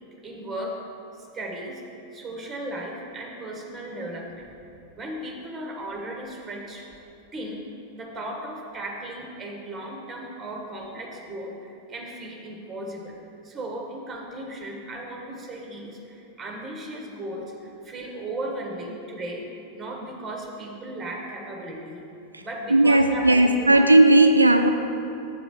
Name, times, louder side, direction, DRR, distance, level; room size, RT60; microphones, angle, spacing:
voice 1, 0.2-0.8 1.1-1.8 2.1-4.5 5.0-6.9 7.3-7.6 7.9-13.2 13.4-22.0 22.4-23.9, right 1 dB, 15° right, 0 dB, 1.5 m, -36 dB
voice 2, 22.7-24.7, right 1 dB, 85° right, 6 dB, 0.3 m, -16 dB
7.8 x 4.9 x 6.8 m, 2.7 s
figure-of-eight pair, 90°, 0 cm